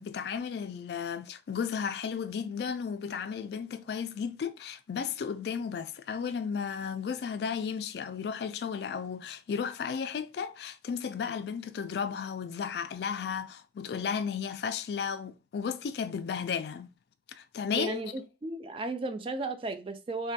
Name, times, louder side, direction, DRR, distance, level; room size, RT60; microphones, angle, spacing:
voice 1, 0.0-16.9 17.3-18.0, left 6 dB, 60° left, 0.3 m, -34 dB
voice 2, 17.7-20.3, right 2 dB, 30° right, 0.3 m, -35 dB
3.2 x 2.2 x 2.6 m
head